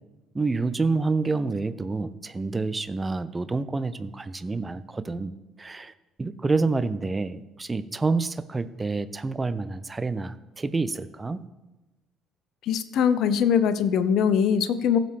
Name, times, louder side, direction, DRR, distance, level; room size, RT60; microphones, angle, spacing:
voice 1, 0.3-5.9 6.2-11.4, right 3 dB, 20° right, 14 dB, 0.6 m, -28 dB
voice 2, 12.6-15.0, left 7 dB, 55° left, 13 dB, 0.5 m, -22 dB
16.0 x 6.6 x 3.3 m, 1.1 s
figure-of-eight pair, 50°, 0 cm